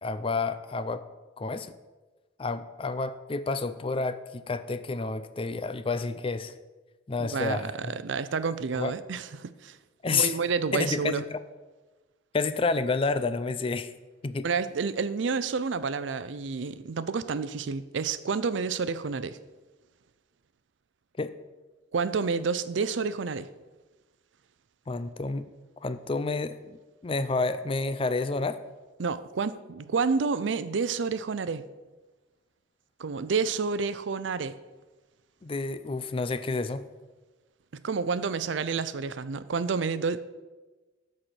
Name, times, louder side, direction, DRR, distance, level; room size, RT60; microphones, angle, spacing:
voice 1, 0.0-1.0 1.4-1.7 2.4-6.5 7.1-7.9 8.7-8.9 10.0-10.3 10.7-11.4 12.3-13.9 14.2-14.5 21.2-21.3 24.9-25.5 25.8-28.6 35.4-36.9, left 3 dB, 30° left, 12 dB, 0.4 m, -29 dB
voice 2, 7.2-9.8 10.1-11.2 14.4-19.4 21.9-23.5 29.0-31.6 33.0-34.6 37.8-40.2, right 5 dB, 80° right, 14 dB, 0.5 m, -29 dB
13.0 x 4.3 x 6.2 m, 1.2 s
head